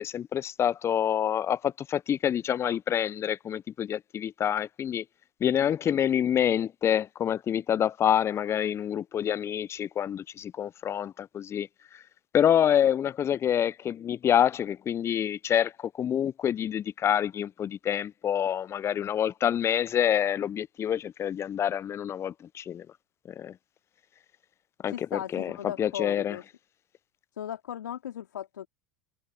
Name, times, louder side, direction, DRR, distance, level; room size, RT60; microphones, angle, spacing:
voice 1, 0.0-5.0 5.4-12.0 12.3-22.9 23.3-23.6 24.8-25.5 25.8-26.4, left 9 dB, 25° left, 0.4 m, -27 dB
voice 2, 24.9-26.4 27.4-28.7, left 10 dB, 85° left, 3.6 m, -37 dB
hypercardioid pair, 90°, 10 cm